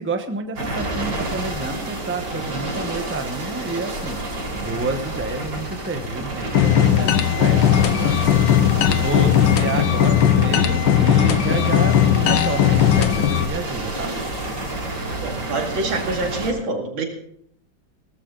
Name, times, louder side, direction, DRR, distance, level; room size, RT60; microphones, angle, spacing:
voice 1, 0.0-14.1, right 3 dB, 10° right, 7 dB, 0.6 m, -30 dB
sound 1, 0.6-16.5, right 2 dB, 70° right, 4.2 m, -29 dB
sound 2, 6.5-13.4, left 10 dB, 80° left, 1.7 m, -17 dB
voice 2, 15.2-17.0, right 2 dB, 85° right, 3 dB, 3.0 m, -26 dB
17.5 x 14.0 x 3.9 m, 0.68 s
omnidirectional pair, 2.1 m